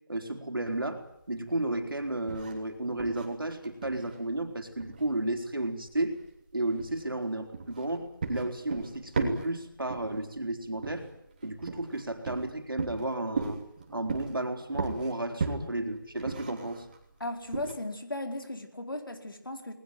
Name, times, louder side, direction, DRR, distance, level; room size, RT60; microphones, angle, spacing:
voice 1, 0.1-1.0 1.3-6.1 6.5-11.1 11.4-13.6 13.9-16.9, right 1 dB, 90° right, 5 dB, 4.5 m, -33 dB
sound 1, 0.7-17.7, right 4 dB, 25° right, 3.2 m, -38 dB
voice 2, 17.2-19.7, left 1 dB, 80° left, 6 dB, 4.5 m, -36 dB
20.5 x 20.0 x 9.4 m, 0.74 s
figure-of-eight pair, 170°, 11 cm